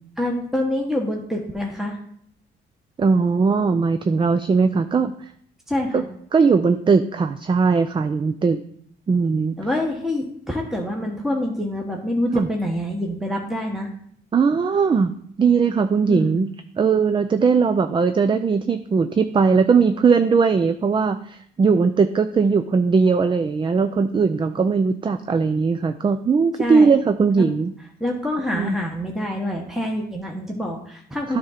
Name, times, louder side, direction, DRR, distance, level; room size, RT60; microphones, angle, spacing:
voice 1, 0.2-2.0 5.7-6.0 9.6-13.9 16.1-16.4 26.6-26.9 27.4-27.5 28.0-31.4, left 1 dB, ahead, 0 dB, 1.1 m, -26 dB
voice 2, 3.0-5.1 5.9-6.0 6.3-8.6 9.1-9.6 12.3-12.5 14.3-16.5 16.8-27.7 28.5-28.7 31.3-31.4, right 5 dB, 25° right, 9 dB, 0.4 m, -19 dB
9.5 x 3.6 x 5.7 m, 0.65 s
cardioid pair, 90°, 20 cm